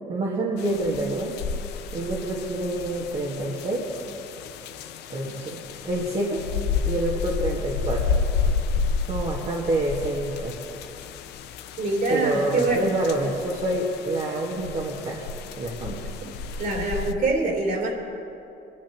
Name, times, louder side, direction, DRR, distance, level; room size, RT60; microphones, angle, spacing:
voice 1, 0.1-1.4 1.9-3.8 5.1-5.6 5.8-6.4 6.8-8.2 9.1-10.5 12.1-15.2 15.5-16.1, right 1 dB, 40° right, -4 dB, 1.7 m, -27 dB
sound 1, 0.6-17.1, left 5 dB, 80° left, 0.7 m, -31 dB
voice 2, 11.8-12.9 16.6-17.9, right 2 dB, 60° right, -2 dB, 3.4 m, -24 dB
21.5 x 11.5 x 3.0 m, 2.7 s
cardioid pair, 110°, 17 cm